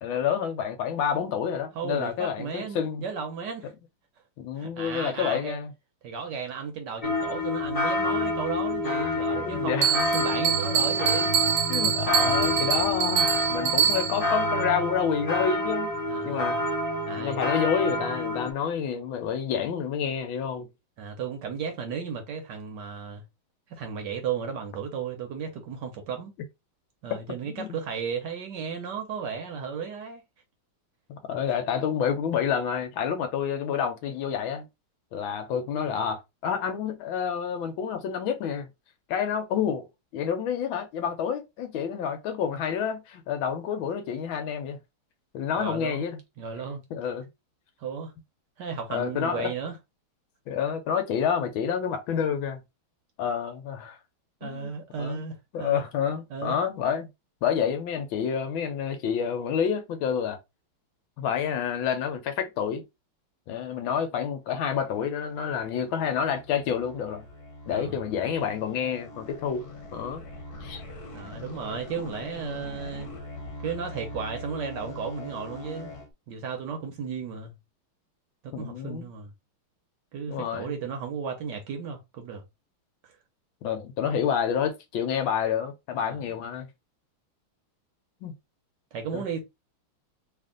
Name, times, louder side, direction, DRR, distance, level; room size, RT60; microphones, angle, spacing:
voice 1, 0.0-3.1 4.4-5.7 9.3-9.9 11.7-15.9 16.3-16.6 17.2-20.7 27.4-27.7 31.1-34.7 35.1-38.7 39.1-39.8 40.1-44.8 45.3-46.2 46.9-47.3 48.9-49.5 50.5-52.6 53.2-54.0 54.4-55.2 55.5-57.1 57.4-60.4 61.2-62.8 63.5-67.2 67.7-69.6 69.9-70.2 70.6-70.8 78.5-79.1 80.3-80.7 83.6-86.7 88.2-88.3 89.1-89.2, left 7 dB, 75° left, 1.4 m, -29 dB
voice 2, 1.7-3.7 4.6-5.6 6.0-11.4 12.1-12.7 16.0-16.7 17.1-17.4 21.0-23.2 23.7-26.3 27.0-30.2 45.6-46.0 46.4-46.8 47.8-48.1 48.6-49.8 54.4-55.8 56.3-56.6 67.7-68.0 71.1-73.1 73.6-75.9 76.3-77.5 78.4-79.3 80.1-82.4 83.0-83.1 86.0-86.3 88.9-89.4, right 6 dB, 65° right, 1.2 m, -34 dB
sound 1, 7.0-18.5, left 1 dB, 35° left, 0.5 m, -28 dB
Bell, 9.8-14.3, right 9 dB, 90° right, 1.6 m, -25 dB
sound 2, 64.7-76.1, left 2 dB, 55° left, 1.3 m, -42 dB
3.4 x 2.5 x 3.7 m
omnidirectional pair, 2.3 m